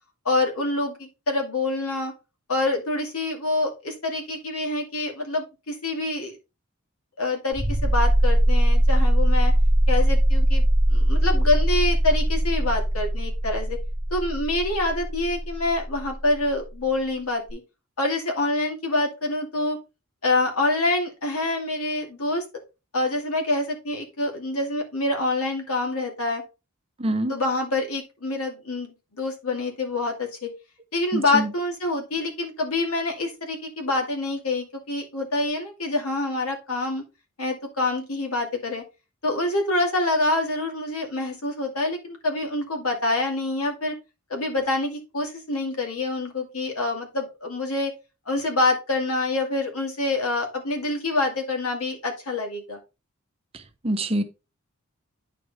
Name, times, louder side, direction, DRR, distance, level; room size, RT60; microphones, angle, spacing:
voice 1, 0.2-2.1 2.5-6.4 7.2-9.5 9.9-13.8 14.1-17.6 18.0-19.8 20.2-22.4 22.9-26.4 27.3-30.5 30.9-37.0 37.4-38.8 39.2-43.9 44.3-47.9 48.3-52.8, left 2 dB, 85° left, 2.4 m, -26 dB
sound 1, 7.5-16.0 17.5-17.6, right 1 dB, 20° left, 2.1 m, -20 dB
voice 2, 27.0-27.3 31.1-31.5 53.8-54.2, right 1 dB, 25° right, 0.8 m, -25 dB
9.3 x 4.7 x 3.5 m
head